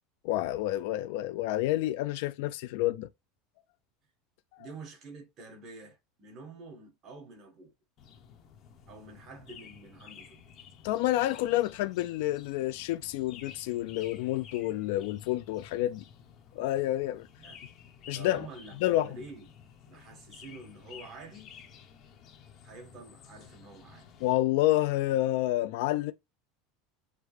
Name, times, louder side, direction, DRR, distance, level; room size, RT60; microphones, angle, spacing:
voice 1, 0.2-3.1 4.5-4.7 10.8-16.0 16.6-17.3 18.1-18.5 18.8-19.2 24.2-26.1, left 15 dB, 70° left, 0.3 m, -29 dB
voice 2, 4.6-7.7 8.9-10.4 17.4-17.6 18.1-19.5 19.9-21.5 22.6-24.1, right 3 dB, 35° right, 1.6 m, -48 dB
sound 1, 8.0-24.4, left 8 dB, 35° left, 0.9 m, -53 dB
6.4 x 2.2 x 3.2 m
supercardioid pair, 150°, 0 cm